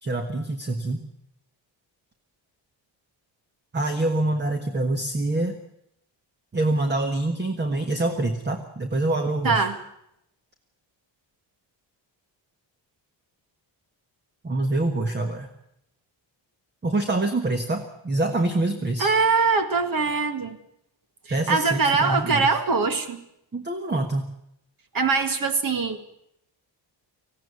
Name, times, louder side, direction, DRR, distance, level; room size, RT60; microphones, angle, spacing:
voice 1, 0.0-1.0 3.7-5.5 6.5-9.7 14.4-15.5 16.8-19.1 21.3-22.5 23.5-24.3, right 2 dB, 20° right, 6 dB, 1.5 m, -25 dB
voice 2, 9.4-9.8 19.0-20.6 21.3-23.2 24.9-26.0, right 4 dB, 45° right, 9 dB, 2.1 m, -22 dB
19.0 x 16.0 x 9.6 m, 0.78 s
wide cardioid pair, 165°, 46 cm